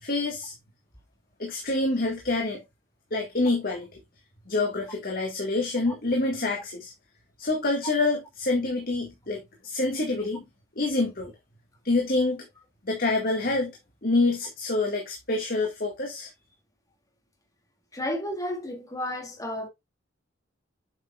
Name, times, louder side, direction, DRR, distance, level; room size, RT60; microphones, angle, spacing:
voice 1, 0.0-0.5 1.4-2.6 3.1-3.9 4.5-6.9 7.4-10.4 10.8-11.3 11.8-12.5 12.9-13.8 14.0-16.3, left 2 dB, 50° left, 1.9 m, -27 dB
voice 2, 17.9-19.7, left 1 dB, 20° left, 2.0 m, -32 dB
8.1 x 6.4 x 2.4 m
head